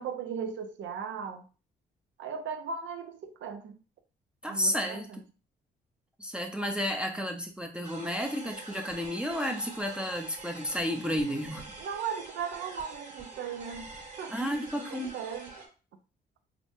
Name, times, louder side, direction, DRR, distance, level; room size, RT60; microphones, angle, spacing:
voice 1, 0.0-1.5 2.2-3.8 4.5-5.2 11.8-14.3 14.9-15.5, right 6 dB, 70° right, 0.6 m, -37 dB
voice 2, 4.4-5.1 6.2-11.7 14.3-15.1, equal, 5° right, 0.6 m, -32 dB
sound 1, 7.8-15.7, right 3 dB, 35° right, 1.5 m, -46 dB
4.9 x 2.2 x 2.7 m
cardioid pair, 90°, 20 cm